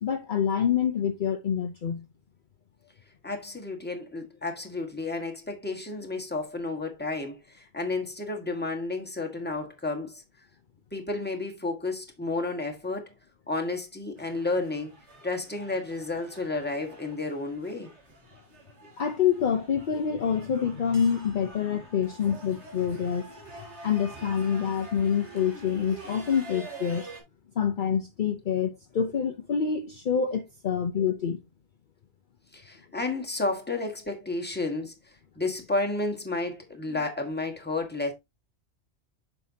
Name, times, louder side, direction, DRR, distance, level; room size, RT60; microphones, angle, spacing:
voice 1, 0.0-2.1 19.0-23.3 23.8-27.1 27.6-31.4, left 7 dB, 50° left, 0.8 m, -27 dB
voice 2, 3.2-10.2 10.9-13.1 13.5-14.9 15.2-17.9 32.5-34.9 35.4-38.1, left 2 dB, 10° left, 1.4 m, -31 dB
sound 1, 14.2-27.2, right 2 dB, 85° right, 2.3 m, -47 dB
7.5 x 5.7 x 2.7 m
omnidirectional pair, 1.1 m